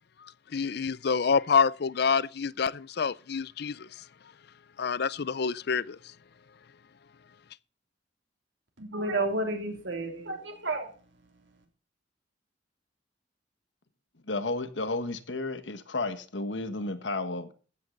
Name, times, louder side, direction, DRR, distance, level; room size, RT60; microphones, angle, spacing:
voice 1, 0.5-3.9 4.8-6.0, left 5 dB, 60° left, 0.5 m, -27 dB
voice 2, 8.8-11.7, right 2 dB, 75° right, 3.3 m, -32 dB
voice 3, 14.3-17.5, left 2 dB, 75° left, 1.5 m, -32 dB
15.0 x 9.9 x 3.9 m
head